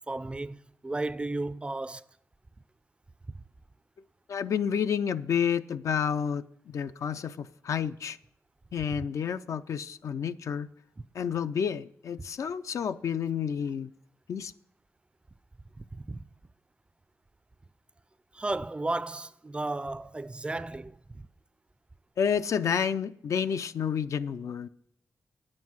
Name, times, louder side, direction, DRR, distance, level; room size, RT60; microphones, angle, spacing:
voice 1, 0.1-2.1 8.9-9.0 15.9-16.2 18.3-21.2, right 2 dB, 20° right, 0.4 m, -34 dB
voice 2, 4.3-8.2 8.7-10.7 11.1-13.9 14.3-14.5 22.2-24.7, left 7 dB, 70° left, 0.4 m, -30 dB
9.3 x 7.5 x 6.1 m
cardioid pair, 95°, 5 cm